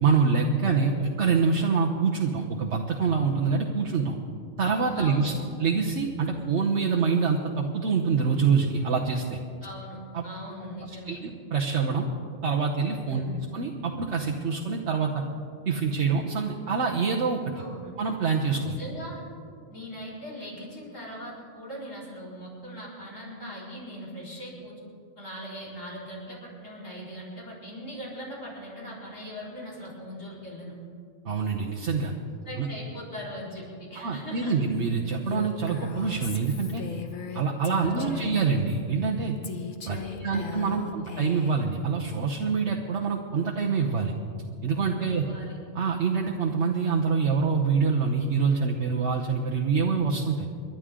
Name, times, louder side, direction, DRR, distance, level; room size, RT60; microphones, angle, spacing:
voice 1, 0.0-4.2 4.6-5.3 5.6-9.4 10.1-10.2 11.1-12.1 12.4-13.2 13.5-15.2 15.7-17.6 18.0-18.7 31.2-32.1 32.6-32.7 34.0-36.8 37.3-39.4 39.9-44.1 44.6-45.2 45.7-50.5, right 5 dB, 65° right, -1 dB, 1.3 m, -25 dB
voice 2, 4.9-5.4 9.6-11.2 13.1-13.4 17.5-17.9 18.7-19.2 19.7-24.7 25.2-30.7 32.5-34.5 37.8-38.2 40.0-40.4 40.7-41.0 45.0-45.6, equal, 80° left, -7 dB, 5.4 m, -40 dB
Female speech woman speaking, 35.3-38.5 39.4-41.7, left 6 dB, 45° left, 1.1 m, -38 dB
29.5 x 11.5 x 3.8 m, 2.3 s
omnidirectional pair, 1.3 m